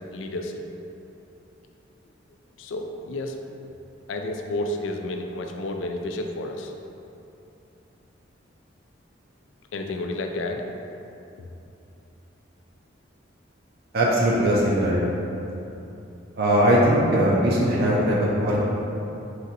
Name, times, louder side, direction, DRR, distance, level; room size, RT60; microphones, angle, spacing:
voice 1, 0.1-0.6 2.6-3.4 4.1-6.7 9.7-10.7, left 1 dB, 75° left, 4 dB, 0.4 m, -31 dB
voice 2, 13.9-15.0 16.4-18.6, equal, 55° right, -4 dB, 0.5 m, -20 dB
4.1 x 2.6 x 4.0 m, 2.9 s
head